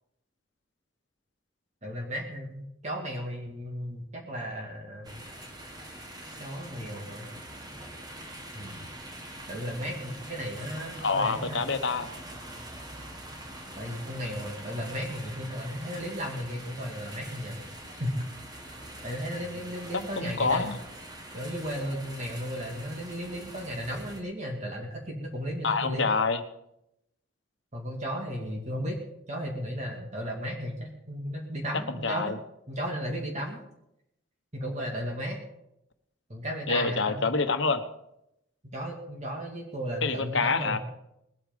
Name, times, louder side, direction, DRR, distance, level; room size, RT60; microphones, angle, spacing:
voice 1, 1.8-5.1 6.4-7.3 8.5-8.8 9.5-11.6 13.8-17.6 17.9-18.2 19.0-20.7 21.3-26.1 27.7-29.0 29.3-32.3 32.7-33.6 34.5-35.4 36.3-37.3 38.7-40.8, equal, 35° right, 0 dB, 2.2 m, -35 dB
sound 1, 5.0-24.2, right 1 dB, 20° right, 1.6 m, -44 dB
voice 2, 11.0-12.1 20.2-20.8 25.6-26.4 32.0-32.4 36.7-37.8 40.0-40.8, left 4 dB, 65° left, 9 dB, 1.2 m, -26 dB
20.5 x 8.8 x 5.2 m, 0.82 s
head